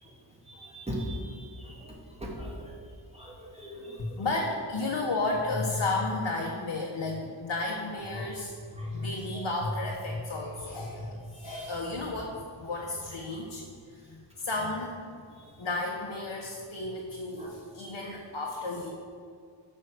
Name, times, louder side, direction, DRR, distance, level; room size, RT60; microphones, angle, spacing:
voice 1, 0.7-1.2 1.6-1.7 2.2-2.7 3.2-4.2 8.2-8.3 11.4-11.6 17.4-17.5, equal, 15° right, -4 dB, 2.5 m, -38 dB
voice 2, 4.0-15.0 15.6-18.9, left 2 dB, 65° left, -2 dB, 1.2 m, -33 dB
8.8 x 5.6 x 6.5 m, 2.2 s
wide cardioid pair, 55°, 48 cm